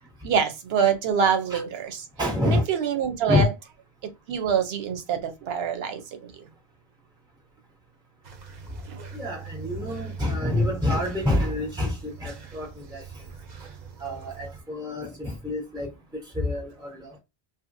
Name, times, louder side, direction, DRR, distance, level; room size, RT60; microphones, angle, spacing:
voice 1, 0.2-2.1 2.4-3.5 4.3-6.5 8.9-9.0, right 7 dB, 80° right, 0.8 m, -25 dB
voice 2, 2.2-2.6 3.3-3.5 9.1-11.9 12.2-13.0 14.0-15.9 16.4-17.1, left 2 dB, 5° right, 0.4 m, -27 dB
sound 1, 8.2-14.6, right 6 dB, 50° right, 0.6 m, -41 dB
2.8 x 2.4 x 2.5 m
omnidirectional pair, 1.1 m